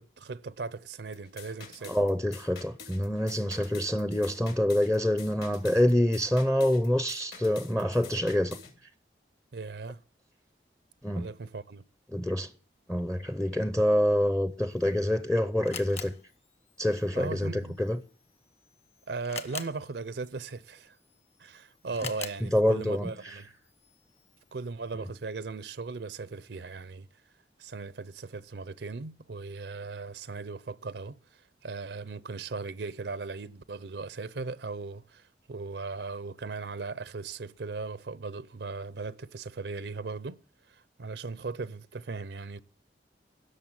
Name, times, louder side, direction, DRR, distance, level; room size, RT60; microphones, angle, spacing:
voice 1, 0.0-2.0 9.5-10.0 11.1-11.8 17.1-17.8 19.1-21.0 21.4-23.5 24.5-27.1 27.6-31.2 31.6-40.4 40.7-42.6, right 4 dB, 75° right, 0.6 m, -38 dB
sound 1, 1.1-8.7, left 6 dB, 60° left, 3.2 m, -48 dB
voice 2, 1.9-8.6 11.0-11.3 12.1-12.5 12.9-16.1 16.8-18.0 22.5-23.4, left 1 dB, 5° left, 0.5 m, -26 dB
Camera, 14.7-24.6, left 7 dB, 35° left, 1.4 m, -47 dB
16.5 x 6.7 x 7.4 m
head